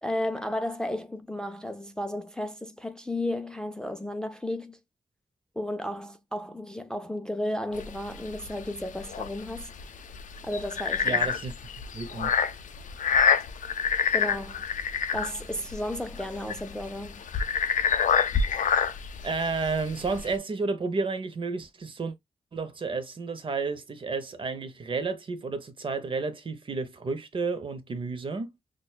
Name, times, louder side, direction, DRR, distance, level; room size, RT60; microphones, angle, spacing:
voice 1, 0.0-4.8 5.6-9.7 10.4-11.3 14.1-14.6 15.1-17.2, left 1 dB, 5° left, 0.4 m, -33 dB
sound 1, 7.7-20.4, left 6 dB, 90° left, 0.5 m, -27 dB
voice 2, 11.0-11.5 11.9-12.3 19.2-22.1 22.5-28.5, right 4 dB, 45° right, 0.7 m, -31 dB
6.1 x 2.2 x 2.3 m
wide cardioid pair, 155°, 13 cm